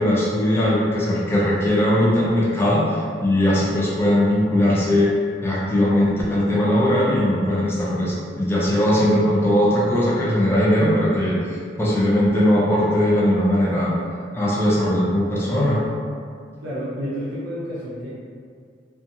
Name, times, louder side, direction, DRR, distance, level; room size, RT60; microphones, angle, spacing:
voice 1, 0.0-5.1 5.4-13.9 14.3-15.8, left 1 dB, 15° left, -6 dB, 0.4 m, -19 dB
voice 2, 16.6-18.1, equal, 70° right, -8 dB, 0.6 m, -30 dB
2.7 x 2.3 x 2.6 m, 2.2 s
head